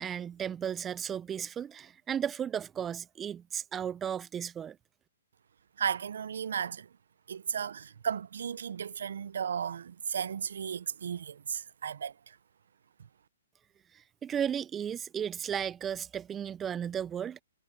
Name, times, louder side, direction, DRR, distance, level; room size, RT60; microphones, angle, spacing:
voice 1, 0.0-4.8 14.2-17.4, right 8 dB, 15° right, 0.3 m, -34 dB
voice 2, 5.8-6.9 7.3-12.4, right 7 dB, 70° right, 0.6 m, -35 dB
hypercardioid pair, 140°, 0 cm